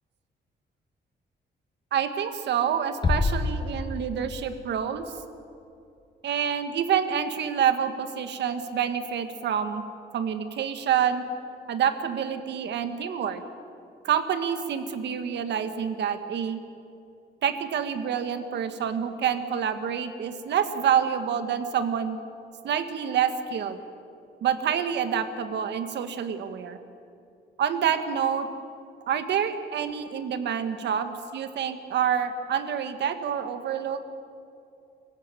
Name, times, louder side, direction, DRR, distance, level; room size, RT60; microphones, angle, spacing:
voice 1, 1.9-5.0 6.2-9.8 10.1-11.2 11.7-13.4 14.0-16.6 17.4-22.2 22.6-23.8 24.4-26.8 27.6-28.5 29.1-34.0, right 8 dB, 75° right, 9 dB, 1.7 m, -27 dB
sound 1, 3.0-4.7, left 3 dB, 25° left, 1.5 m, -27 dB
24.0 x 15.5 x 9.2 m, 2.6 s
cardioid pair, 145°, 18 cm